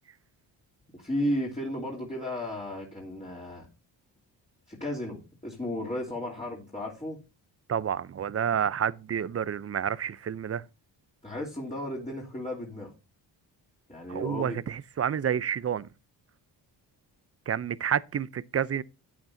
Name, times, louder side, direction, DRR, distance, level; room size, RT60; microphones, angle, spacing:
voice 1, 0.9-3.7 4.7-7.2 11.2-12.9 13.9-14.6, left 1 dB, 15° left, 3.1 m, -34 dB
voice 2, 7.7-10.6 14.1-15.9 17.5-18.8, right 8 dB, 30° right, 0.6 m, -29 dB
12.0 x 8.7 x 2.7 m
supercardioid pair, 65°, 45 cm